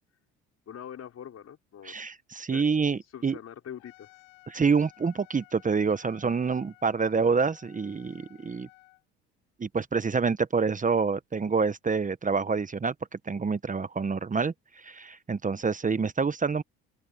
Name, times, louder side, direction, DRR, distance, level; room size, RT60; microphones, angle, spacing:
voice 1, 0.7-1.9 2.5-2.6 3.1-4.2, left 9 dB, 50° left, 4.8 m, -43 dB
voice 2, 1.8-3.4 4.5-8.7 9.6-16.6, right 5 dB, 25° right, 1.2 m, -27 dB
Trumpet, 3.8-9.0, left 30 dB, 80° left, 6.1 m, -56 dB
supercardioid pair, 70°, 32 cm